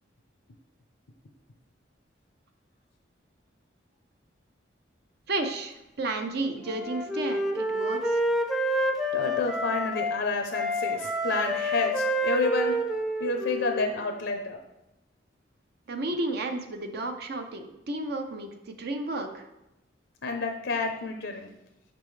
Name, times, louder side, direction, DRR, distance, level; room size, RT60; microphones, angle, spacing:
voice 1, 5.3-8.2 15.9-19.5, right 2 dB, 60° right, 6 dB, 0.6 m, -32 dB
Wind instrument woodwind instrument, 6.6-10.2 10.5-14.3, equal, ahead, 0.5 m, -28 dB
voice 2, 9.1-12.8 13.2-14.6 20.2-21.5, left 3 dB, 80° left, 4 dB, 0.6 m, -29 dB
6.3 x 5.2 x 3.2 m, 0.94 s
head